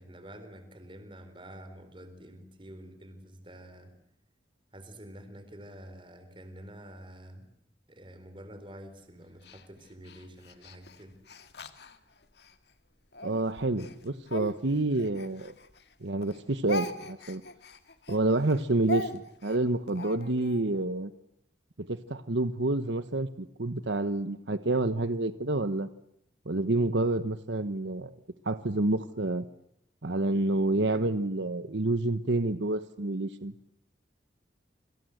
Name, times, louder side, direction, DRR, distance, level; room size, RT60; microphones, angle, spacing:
voice 1, 0.0-3.9 4.7-7.5 7.9-11.2, right 1 dB, 25° right, 10 dB, 4.1 m, -48 dB
Speech, 9.4-12.6 13.1-15.9 16.2-20.6, left 1 dB, 60° left, 2.0 m, -40 dB
voice 2, 13.2-15.5 16.0-17.4 18.1-21.1 21.8-25.9 26.5-28.1 28.4-29.4 30.0-33.5, right 2 dB, 75° right, 11 dB, 1.1 m, -28 dB
28.0 x 26.0 x 8.0 m, 0.72 s
head